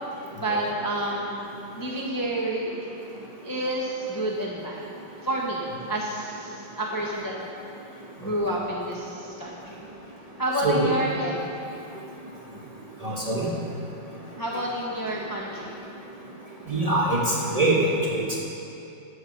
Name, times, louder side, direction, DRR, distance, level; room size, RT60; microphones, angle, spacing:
voice 1, 0.1-1.4 1.8-3.0 3.4-4.8 5.2-7.5 8.2-9.9 10.4-11.5 14.4-15.8, right 1 dB, 15° left, -5 dB, 0.7 m, -29 dB
voice 2, 13.0-13.5 16.7-18.4, right 2 dB, 20° right, -5 dB, 1.1 m, -23 dB
12.5 x 7.9 x 5.3 m, 2.8 s
omnidirectional pair, 2.3 m